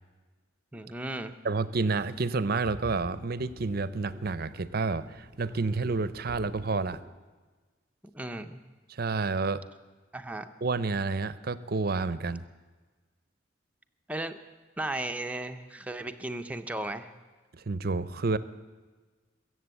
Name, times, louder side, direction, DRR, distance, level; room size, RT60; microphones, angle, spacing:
voice 1, 0.7-1.3 8.1-8.6 10.1-10.5 12.3-12.4 14.1-14.4 14.8-17.1, right 1 dB, 5° right, 7 dB, 0.7 m, -35 dB
voice 2, 1.4-7.0 8.9-9.6 10.6-12.4 17.5-18.4, right 3 dB, 50° right, 15 dB, 0.6 m, -29 dB
sound 1, 1.7-7.0, equal, 25° left, 3.1 m, -48 dB
22.5 x 7.7 x 8.2 m, 1.3 s
head